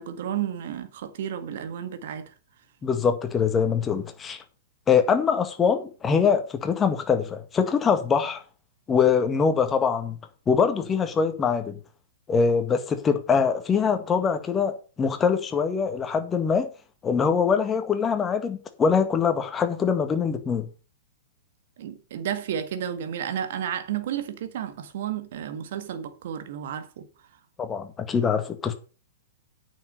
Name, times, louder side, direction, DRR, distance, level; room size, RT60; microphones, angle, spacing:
voice 1, 0.0-2.3 21.8-27.1, right 9 dB, 60° right, 1.8 m, -32 dB
voice 2, 2.8-4.4 4.9-8.4 8.9-10.2 10.5-11.8 12.3-16.7 17.0-20.7 27.6-28.7, left 6 dB, 20° left, 1.8 m, -23 dB
9.2 x 6.5 x 6.7 m
figure-of-eight pair, 110°, 0 cm